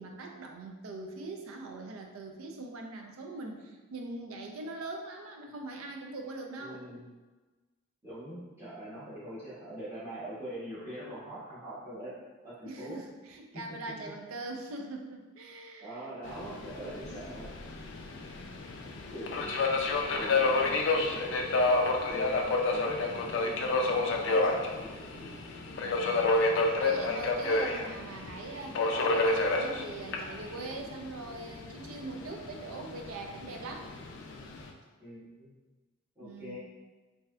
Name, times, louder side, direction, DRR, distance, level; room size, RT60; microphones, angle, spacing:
voice 1, 0.0-6.9 12.6-16.0 20.1-21.0 24.1-24.2 25.7-33.9 36.2-36.6, right 2 dB, 85° right, 3 dB, 0.4 m, -42 dB
voice 2, 6.6-7.1 8.0-12.2 12.4-13.0 15.8-17.5 19.1-19.4 20.2-21.7 22.1-25.3 35.0-35.6 36.2-36.6, right 1 dB, 10° right, -12 dB, 1.2 m, -43 dB
Subway metro underground, 16.3-34.7, left 2 dB, 55° left, 0.3 m, -30 dB
3.2 x 2.6 x 2.3 m, 1.3 s
head